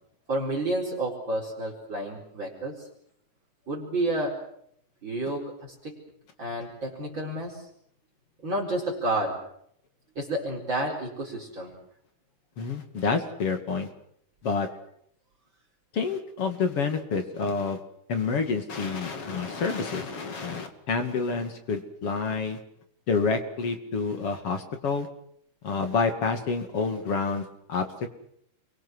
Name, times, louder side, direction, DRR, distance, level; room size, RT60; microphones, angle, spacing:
voice 1, 0.3-2.9 3.7-4.4 5.0-6.0 6.4-7.6 8.4-9.4 10.1-11.7, right 1 dB, 35° right, -1 dB, 5.1 m, -30 dB
voice 2, 12.6-13.9 14.4-14.7 15.9-17.8 18.1-22.6 23.1-25.1 25.6-27.9, left 4 dB, 50° left, 6 dB, 3.2 m, -28 dB
29.0 x 23.5 x 6.4 m, 0.69 s
omnidirectional pair, 3.6 m